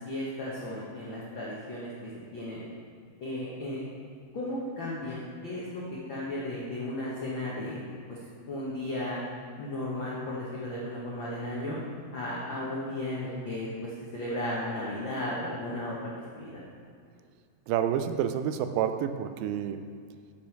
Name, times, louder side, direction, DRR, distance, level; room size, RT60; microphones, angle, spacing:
voice 1, 0.0-1.9 2.3-2.6 3.2-3.8 4.3-5.8 6.1-7.8 8.1-8.2 8.5-9.2 9.6-11.8 12.1-15.9 16.3-16.6, left 1 dB, 70° left, -6 dB, 1.1 m, -35 dB
voice 2, 17.7-19.9, right 9 dB, 85° right, 9 dB, 2.3 m, -29 dB
9.3 x 8.4 x 4.6 m, 2.2 s
omnidirectional pair, 4.1 m